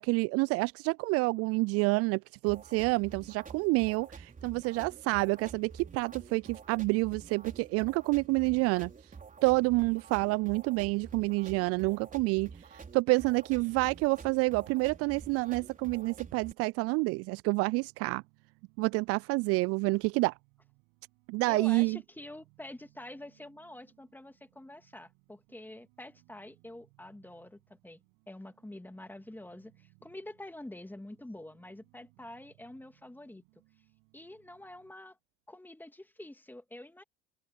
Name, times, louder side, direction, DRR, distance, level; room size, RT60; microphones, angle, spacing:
voice 1, 0.0-8.9 9.4-18.2 18.8-20.3 21.3-22.0, right 26 dB, 45° right, 0.4 m, -28 dB
sound 1, 2.5-16.5, right 5 dB, 25° right, 4.1 m, -49 dB
sound 2, 17.7-34.9, right 30 dB, 60° right, 6.3 m, -67 dB
voice 2, 21.5-28.0 28.3-33.4 34.1-35.2 35.5-37.0, left 1 dB, 5° left, 2.7 m, -47 dB
hypercardioid pair, 75°, 35 cm